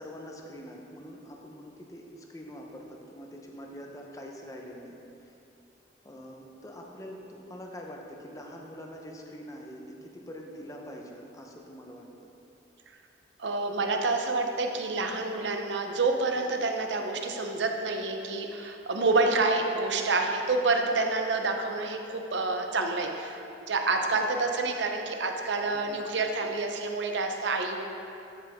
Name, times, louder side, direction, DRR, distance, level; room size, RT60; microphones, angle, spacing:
voice 1, 0.0-4.9 5.2-5.3 6.0-12.3 24.1-24.2 25.7-26.0, equal, 20° left, 0 dB, 0.8 m, -44 dB
voice 2, 13.4-23.4 23.7-27.8, right 3 dB, 75° right, 4 dB, 0.7 m, -28 dB
13.0 x 5.5 x 3.6 m, 2.7 s
head